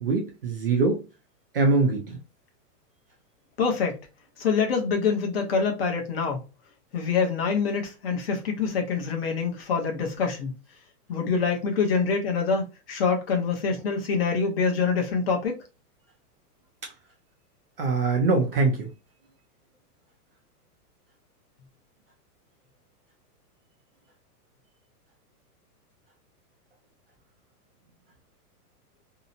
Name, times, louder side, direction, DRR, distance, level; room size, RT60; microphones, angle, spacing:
voice 1, 0.0-1.0 1.5-2.2 17.8-18.9, right 3 dB, 40° right, 0.4 m, -23 dB
voice 2, 3.6-4.0 4.4-6.4 6.9-10.5 11.1-15.6, left 5 dB, 40° left, 0.7 m, -25 dB
2.8 x 2.1 x 2.5 m
hypercardioid pair, 165°, 47 cm